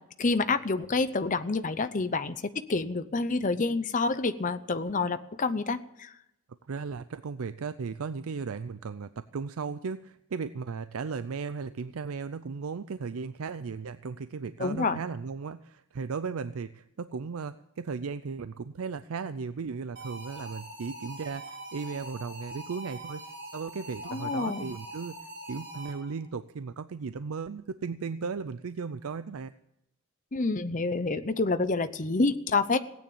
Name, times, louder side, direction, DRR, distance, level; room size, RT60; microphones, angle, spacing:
voice 1, 0.2-6.1 14.6-15.0 24.0-24.7 30.3-32.8, left 3 dB, 35° left, 11 dB, 0.7 m, -28 dB
voice 2, 6.7-23.2 23.5-25.2 25.5-29.5, right 5 dB, 70° right, 13 dB, 0.5 m, -36 dB
sound 1, 20.0-26.2, right 1 dB, 55° right, 5.4 m, -43 dB
17.0 x 9.3 x 8.6 m, 0.82 s
head